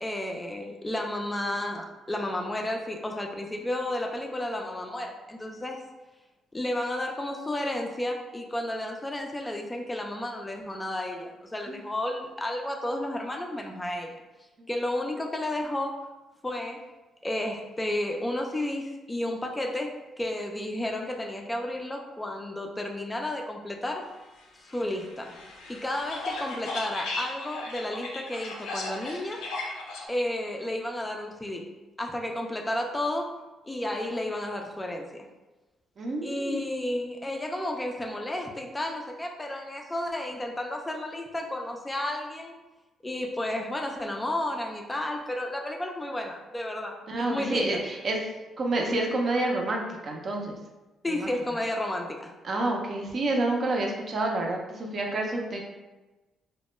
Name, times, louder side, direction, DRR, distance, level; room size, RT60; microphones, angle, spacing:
voice 1, 0.0-5.8 6.5-14.2 14.7-16.1 16.4-16.9 17.2-24.0 24.6-25.4 25.7-29.4 30.1-33.4 33.7-35.3 36.2-42.6 43.0-47.8 51.0-52.3, left 1 dB, 15° left, 2 dB, 0.3 m, -32 dB
sound 1, 24.7-30.0, left 2 dB, 85° left, 0.4 m, -36 dB
voice 2, 36.0-36.6 47.1-48.2 48.6-50.6 51.1-51.3 52.4-55.6, right 2 dB, 50° right, 1 dB, 0.5 m, -28 dB
2.2 x 2.1 x 3.0 m, 1.1 s
cardioid pair, 90°, 0 cm